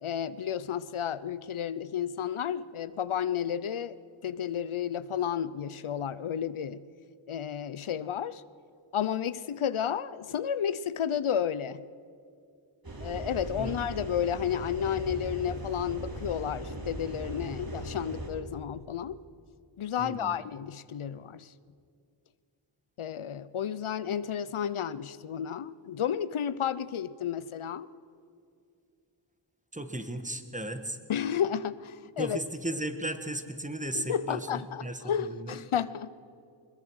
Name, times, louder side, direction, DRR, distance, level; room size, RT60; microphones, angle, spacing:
voice 1, 0.0-4.0 4.2-6.8 7.3-8.4 8.9-11.8 13.0-19.2 19.8-21.5 23.0-27.9 31.1-32.4 33.9-36.1, left 9 dB, 80° left, 16 dB, 0.7 m, -32 dB
sound 1, 12.8-18.3, right 1 dB, 45° right, 3.5 m, -38 dB
voice 2, 13.6-14.0 20.0-20.4 29.7-31.0 32.2-35.6, right 1 dB, 15° right, 8 dB, 1.7 m, -36 dB
21.5 x 21.0 x 6.4 m, 2.4 s
wide cardioid pair, 75°, 49 cm